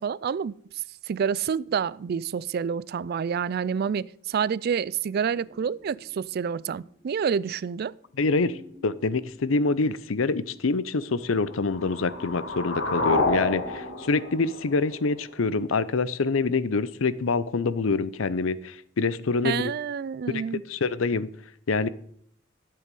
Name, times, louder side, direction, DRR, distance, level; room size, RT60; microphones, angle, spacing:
voice 1, 0.0-7.9 19.4-20.6, right 7 dB, 50° right, 0.3 m, -28 dB
sound 1, 5.1-14.0, equal, 10° right, 2.2 m, -51 dB
voice 2, 8.2-19.7 20.3-20.4 20.7-21.3 21.7-21.9, left 3 dB, 90° left, 0.7 m, -26 dB
sound 2, 11.5-15.5, left 2 dB, 60° left, 2.6 m, -29 dB
13.0 x 7.8 x 5.4 m
head